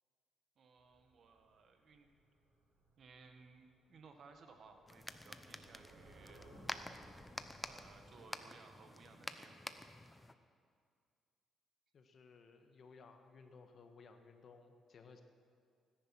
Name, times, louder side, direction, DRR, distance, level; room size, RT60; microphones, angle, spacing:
voice 1, 0.6-2.1 3.0-6.5 7.6-9.8, right 4 dB, 60° right, 6 dB, 1.6 m, -60 dB
sound 1, 0.8-8.2, right 2 dB, 75° right, 5.1 m, -65 dB
sound 2, 4.9-10.3, left 1 dB, 15° left, 0.8 m, -49 dB
voice 2, 11.9-15.2, left 4 dB, 55° left, 6 dB, 1.4 m, -59 dB
18.0 x 10.5 x 6.2 m, 2.2 s
cardioid pair, 90°, 0 cm